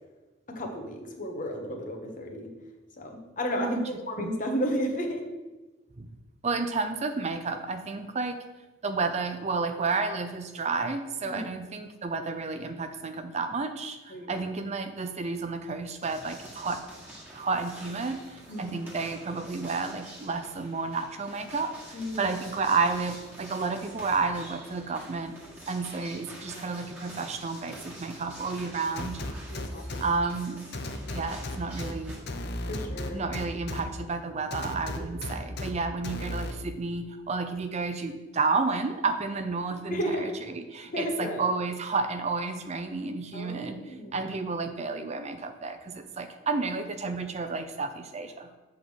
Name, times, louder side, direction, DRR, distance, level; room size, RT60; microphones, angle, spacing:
voice 1, 0.5-2.5 3.0-3.8 4.1-5.3 11.2-11.4 14.1-14.5 18.5-18.8 21.9-22.3 26.5-26.6 29.5-30.0 31.0-31.1 32.7-33.2 39.9-40.3 40.9-41.4 43.3-44.3, equal, 45° left, 3 dB, 1.1 m, -33 dB
voice 2, 6.4-8.4 8.8-16.8 17.3-25.3 25.7-29.2 30.0-30.7 31.1-32.2 33.1-48.5, right 4 dB, 35° right, 8 dB, 0.5 m, -31 dB
sound 1, 16.0-32.2, right 1 dB, 10° right, 1.7 m, -47 dB
sound 2, 29.0-30.0 30.7-31.9 32.3-33.8 34.5-35.7 36.0-36.5, left 2 dB, 60° left, 0.7 m, -34 dB
8.0 x 3.6 x 6.3 m, 1.2 s
head